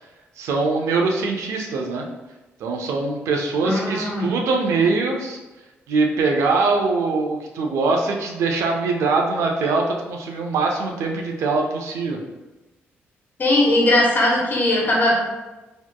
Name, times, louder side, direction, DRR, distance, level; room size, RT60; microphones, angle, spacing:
voice 1, 0.4-2.0 2.6-5.4 5.9-12.2, right 3 dB, 80° right, 2 dB, 0.5 m, -22 dB
voice 2, 3.6-4.3 13.4-15.2, left 1 dB, 40° left, -3 dB, 1.2 m, -19 dB
4.2 x 3.0 x 2.2 m, 1.1 s
cardioid pair, 70°, 5 cm